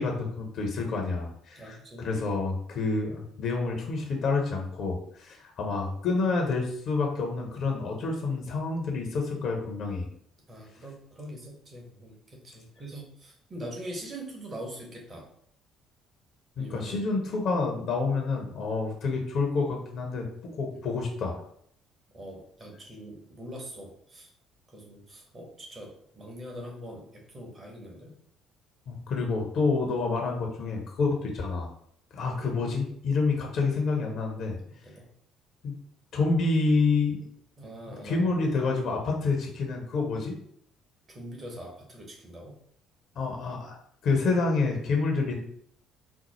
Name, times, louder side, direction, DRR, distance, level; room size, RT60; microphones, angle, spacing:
voice 1, 0.0-10.1 16.6-21.4 28.9-31.7 32.1-34.6 35.6-35.7 36.1-37.2 38.0-40.3 43.2-43.8 44.0-45.3, left 3 dB, 55° left, 1 dB, 0.7 m, -28 dB
voice 2, 1.5-2.1 10.5-15.3 16.6-17.0 20.7-20.8 22.1-24.3 24.7-28.1 34.7-35.0 37.6-38.3 41.1-42.6, right 1 dB, 35° right, -1 dB, 1.3 m, -43 dB
4.2 x 2.0 x 2.9 m, 0.65 s
hypercardioid pair, 50°, 0 cm